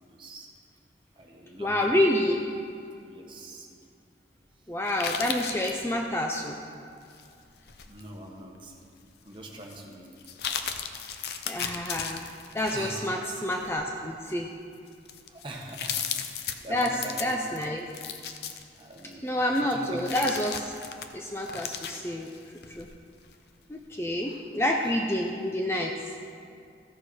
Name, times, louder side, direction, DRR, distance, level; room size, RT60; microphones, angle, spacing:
voice 1, 0.1-0.5 1.1-2.1 3.0-3.7 4.6-4.7 7.8-8.8 9.2-10.1 12.7-13.0 15.3-17.4 18.7-19.4 19.7-20.0 24.1-24.5 24.8-24.9, right 1 dB, 30° right, -1 dB, 1.2 m, -43 dB
voice 2, 1.6-2.4 4.7-6.6 11.5-12.2 12.5-14.5 16.7-16.9 17.2-17.9 19.2-20.7 21.1-22.3 22.7-22.9 23.7-25.9, left 1 dB, 15° left, 1 dB, 0.5 m, -28 dB
sound 1, 4.9-5.8 7.1-8.1 8.6-8.7 9.6-9.8 10.2-13.1 13.5-13.8 14.4-14.5 14.9-19.1 19.6-22.9 23.2-23.3, left 7 dB, 65° left, 0.6 m, -36 dB
14.0 x 6.6 x 4.7 m, 2.4 s
head